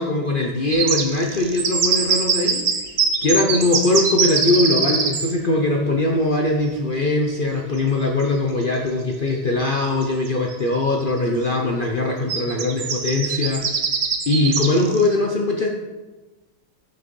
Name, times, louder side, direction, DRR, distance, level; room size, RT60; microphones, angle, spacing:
voice 1, 0.0-2.6 3.2-13.8 14.3-15.7, left 2 dB, 60° left, 1 dB, 0.5 m, -21 dB
sound 1, 0.7-5.3 7.8-7.9 8.2-8.3 9.6-9.7 10.0-10.5 11.0-11.2 12.3-15.1, right 5 dB, 50° right, 0.9 m, -22 dB
6.6 x 6.4 x 5.3 m, 1.2 s
omnidirectional pair, 1.9 m